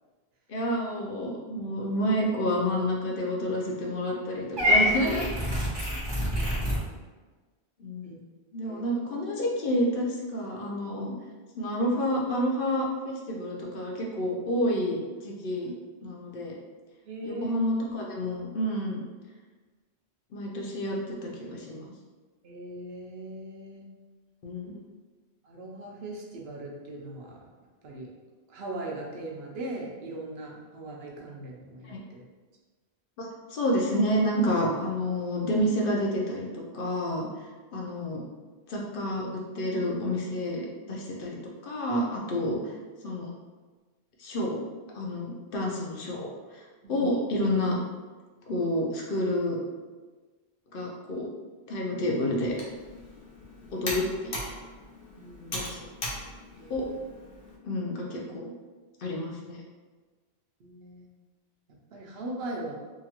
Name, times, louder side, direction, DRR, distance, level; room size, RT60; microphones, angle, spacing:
voice 1, 0.5-5.3 7.8-8.1 8.5-11.1 11.6-15.7 16.0-16.5 17.2-19.0 20.3-21.8 24.4-24.8 31.8-32.0 33.2-37.3 37.7-38.2 38.7-39.3 39.5-41.4 41.6-42.6 43.0-43.3 44.2-44.6 44.9-46.3 46.9-47.8 48.5-49.6 50.7-51.3 51.7-52.5 53.7-54.4 55.5-55.9 56.7-56.9 57.6-58.4 59.0-59.6, equal, 65° left, -2 dB, 0.7 m, -29 dB
Purr / Meow, 4.6-6.8, equal, 30° right, 0.5 m, -25 dB
voice 2, 17.1-17.5 22.4-23.9 25.4-27.4 27.8-28.1 28.5-32.2 46.8-47.1 53.6-54.0 55.1-55.8 56.5-57.0 60.6-61.1 61.9-62.7, right 1 dB, 75° right, -1 dB, 0.8 m, -39 dB
Computer keyboard, 52.4-57.6, left 1 dB, 85° left, 1.0 m, -39 dB
2.8 x 2.4 x 2.8 m, 1.3 s
omnidirectional pair, 1.1 m